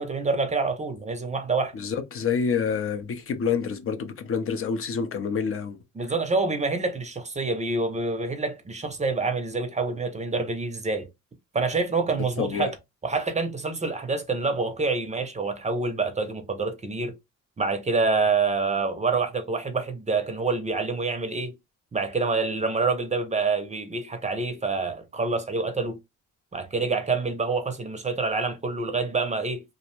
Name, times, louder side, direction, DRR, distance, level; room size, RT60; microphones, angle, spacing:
voice 1, 0.0-1.7 6.0-11.1 11.5-12.7 13.0-17.1 17.6-21.5 21.9-26.0 26.5-29.6, right 3 dB, 25° right, 0.5 m, -27 dB
voice 2, 1.7-6.1 12.4-12.7, left 6 dB, 45° left, 0.6 m, -28 dB
2.5 x 2.1 x 2.9 m
cardioid pair, 90°, 30 cm